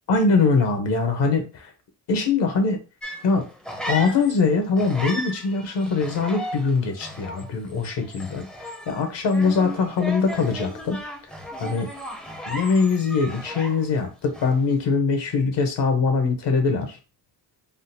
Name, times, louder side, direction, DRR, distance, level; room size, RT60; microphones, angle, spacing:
voice 1, 0.1-1.7 2.1-2.8 3.2-3.4 3.9-11.0 11.6-11.9 12.5-17.0, left 4 dB, 70° left, 5 dB, 1.0 m, -22 dB
sound 1, 3.0-4.5 4.8-14.0 14.3-14.7, equal, ahead, 0.4 m, -36 dB
3.6 x 2.1 x 2.7 m, 0.32 s
cardioid pair, 105°, 44 cm